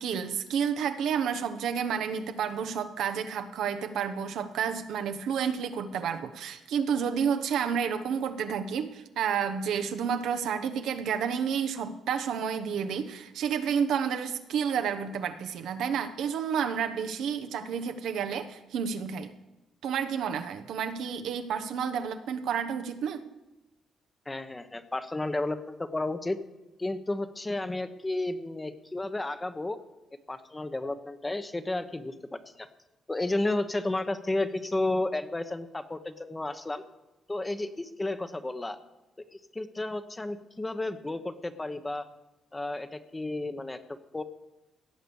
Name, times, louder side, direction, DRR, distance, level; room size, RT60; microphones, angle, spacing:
voice 1, 0.0-19.3 19.8-23.3, right 7 dB, 80° right, 9 dB, 1.0 m, -30 dB
voice 2, 24.3-26.4 26.8-29.8 30.3-32.7 33.1-36.8 37.3-38.8 39.3-42.1 42.5-44.2, left 2 dB, 20° left, 10 dB, 1.0 m, -32 dB
17.0 x 6.7 x 7.1 m, 1.0 s
cardioid pair, 80°, 0 cm